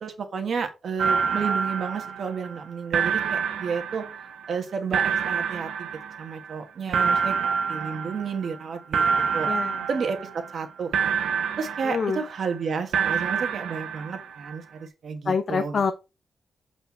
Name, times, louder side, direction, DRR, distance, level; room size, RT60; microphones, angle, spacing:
voice 1, 0.0-4.0 4.5-5.9 6.2-7.3 7.7-9.5 9.9-11.3 11.6-15.8, right 5 dB, 45° right, 5 dB, 1.5 m, -31 dB
sound 1, 1.0-2.7 2.9-4.6 4.9-6.6 6.9-8.7 8.9-10.7 10.9-12.6 12.9-14.6, right 6 dB, 85° right, 1.1 m, -27 dB
voice 2, 9.5-9.8 11.8-12.2 15.3-15.9, left 5 dB, 35° left, 9 dB, 0.6 m, -26 dB
8.0 x 4.5 x 4.5 m, 0.27 s
wide cardioid pair, 180°, 0 cm